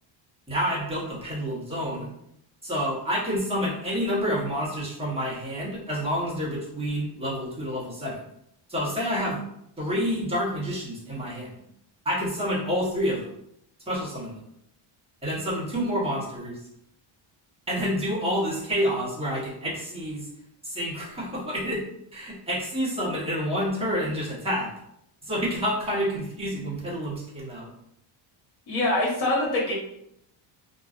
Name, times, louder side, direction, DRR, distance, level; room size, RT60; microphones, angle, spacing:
voice 1, 0.5-2.1 2.6-8.2 8.7-9.4 9.8-11.5 12.0-13.3 13.9-14.4 15.2-16.6 17.7-20.3 20.6-21.8 22.1-24.7 25.2-27.7, equal, 10° right, -7 dB, 0.9 m, -28 dB
voice 2, 28.7-29.7, left 1 dB, 50° left, -4 dB, 1.3 m, -24 dB
2.5 x 2.3 x 2.4 m, 0.76 s
cardioid pair, 130°, 49 cm